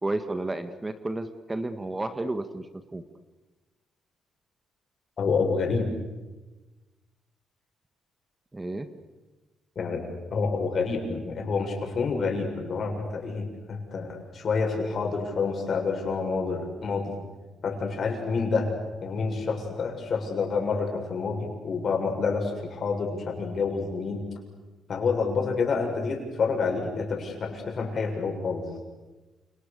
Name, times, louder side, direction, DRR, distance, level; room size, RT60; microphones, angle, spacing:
voice 1, 0.0-2.7 2.9-3.0 8.5-8.9, right 2 dB, 15° right, 9 dB, 1.7 m, -31 dB
voice 2, 5.2-5.9 9.8-10.0 10.3-17.1 17.6-18.7 19.0-24.2 24.9-28.7, left 4 dB, 50° left, 3 dB, 7.0 m, -28 dB
29.0 x 28.5 x 6.9 m, 1.2 s
cardioid pair, 90°, 0 cm